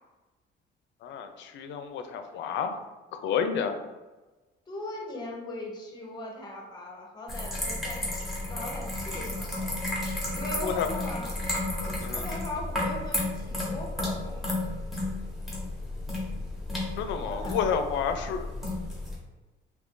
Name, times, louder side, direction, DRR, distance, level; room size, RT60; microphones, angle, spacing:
voice 1, 1.0-2.8 3.1-3.8 10.6-10.9 12.0-12.3 17.0-18.4, left 7 dB, 70° left, 8 dB, 0.4 m, -30 dB
voice 2, 4.7-9.7 10.3-11.4 12.1-14.4 17.2-17.6, left 1 dB, 20° left, 0 dB, 0.7 m, -39 dB
sound 1, 7.3-19.2, left 2 dB, ahead, 0.9 m, -33 dB
2.9 x 2.5 x 3.6 m, 1.2 s
cardioid pair, 155°, 20 cm